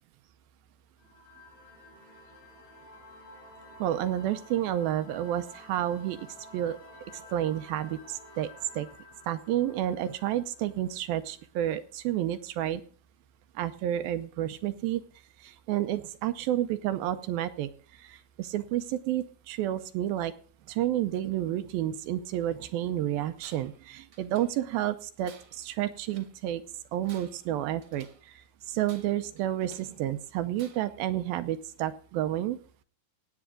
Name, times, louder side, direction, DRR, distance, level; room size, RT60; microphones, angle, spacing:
sound 1, 1.0-11.4, left 2 dB, 70° left, 5.7 m, -51 dB
voice 1, 3.8-6.3 6.5-6.8 7.1-8.5 8.8-8.9 9.3-12.8 13.6-15.0 15.4-17.7 18.0-20.3 20.7-26.6 26.9-32.6, right 12 dB, 80° right, 11 dB, 2.4 m, -30 dB
Tools, 23.4-23.8 24.1-24.8 25.2-26.4 26.9-28.3 28.8-30.0 30.5-31.0, right 6 dB, 50° right, 1.7 m, -55 dB
17.0 x 8.5 x 3.7 m, 0.44 s
omnidirectional pair, 4.4 m